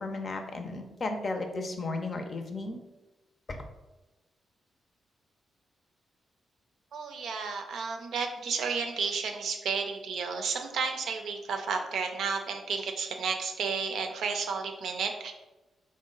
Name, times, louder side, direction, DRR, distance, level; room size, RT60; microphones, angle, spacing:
voice 1, 0.0-2.8 3.5-3.6, left 2 dB, 50° left, 5 dB, 0.5 m, -34 dB
voice 2, 6.9-15.3, right 5 dB, 80° right, 4 dB, 0.5 m, -32 dB
3.8 x 2.1 x 3.7 m, 1.1 s
cardioid pair, 75°, 0 cm